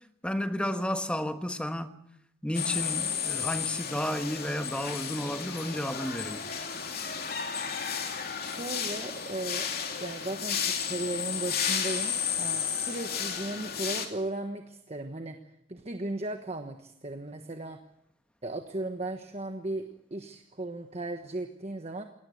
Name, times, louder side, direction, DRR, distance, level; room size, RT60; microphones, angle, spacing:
voice 1, 0.2-2.0 2.4-6.5, equal, 5° left, 1.3 m, -32 dB
sound 1, 2.5-14.1, left 7 dB, 55° left, 2.9 m, -33 dB
voice 2, 8.3-9.7 10.0-15.4 15.7-17.8 18.4-22.0, right 2 dB, 35° right, 1.3 m, -36 dB
20.5 x 18.5 x 7.9 m
head